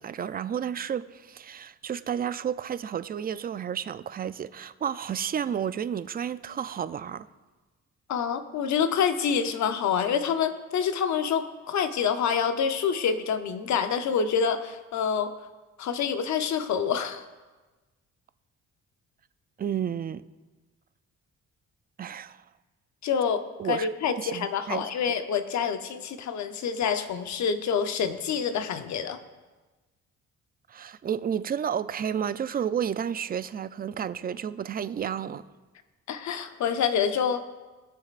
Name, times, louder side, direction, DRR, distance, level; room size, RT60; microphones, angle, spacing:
voice 1, 0.0-7.3 19.6-20.2 22.0-22.4 23.6-23.9 24.2-24.9 30.7-35.4, right 8 dB, 30° right, 0.4 m, -31 dB
voice 2, 8.1-15.3 15.8-17.2 23.0-29.2 36.1-37.4, left 7 dB, 65° left, 0.8 m, -27 dB
17.5 x 6.4 x 2.5 m
cardioid pair, 90°, 30 cm